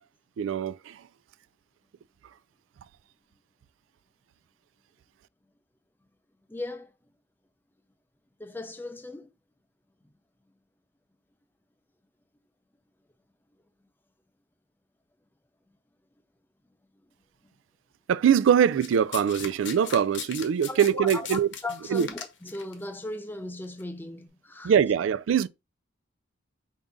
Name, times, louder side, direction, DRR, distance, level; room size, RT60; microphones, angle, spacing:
voice 1, 0.4-1.0 18.1-21.5 21.9-22.1 24.6-25.5, right 8 dB, 80° right, 0.3 m, -23 dB
voice 2, 6.5-6.9 8.4-9.3 20.7-24.7, left 2 dB, 10° left, 0.5 m, -37 dB
Domestic sounds home sounds, 18.8-22.7 23.6-23.8, left 7 dB, 70° left, 0.8 m, -38 dB
4.9 x 2.7 x 3.5 m
head